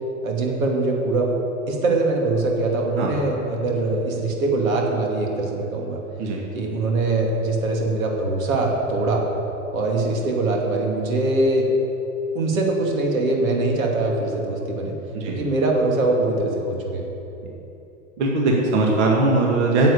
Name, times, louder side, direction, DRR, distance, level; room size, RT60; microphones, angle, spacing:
voice 1, 0.2-1.3 1.7-6.0 6.5-9.2 9.7-11.7 12.3-14.9 15.3-17.1, right 2 dB, 85° right, 0 dB, 2.6 m, -22 dB
voice 2, 18.2-19.9, right 2 dB, 55° right, -1 dB, 2.2 m, -20 dB
9.3 x 7.7 x 8.5 m, 3.0 s
hypercardioid pair, 145°, 40 cm